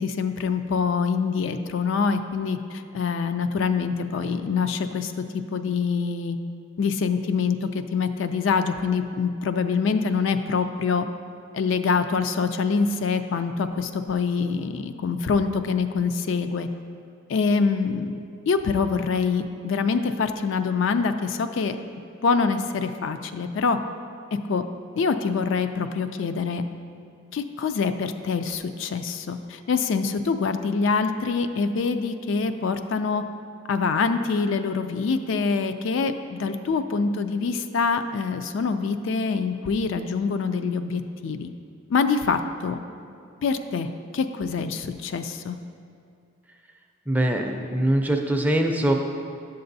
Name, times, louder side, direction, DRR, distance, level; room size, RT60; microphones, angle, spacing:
voice 1, 0.0-5.1 5.5-6.4 6.8-11.1 11.5-16.7 17.3-18.2 18.5-21.8 22.2-23.8 24.3-24.7 24.9-26.6 27.3-33.2 33.7-41.5 41.9-42.8 43.4-45.6, left 5 dB, 65° left, 9 dB, 0.3 m, -25 dB
voice 2, 47.1-48.9, right 1 dB, 10° right, 3 dB, 0.4 m, -22 dB
10.0 x 6.7 x 2.6 m, 2.4 s
head